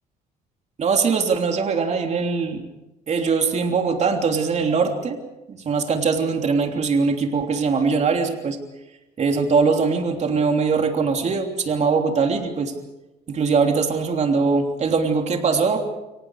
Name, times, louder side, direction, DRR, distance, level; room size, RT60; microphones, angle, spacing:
voice 1, 0.8-2.6 3.1-5.2 5.5-8.6 9.2-12.7 13.3-15.8, right 5 dB, 40° right, 3 dB, 3.2 m, -21 dB
29.5 x 24.0 x 4.9 m, 0.99 s
cardioid pair, 110°, 17 cm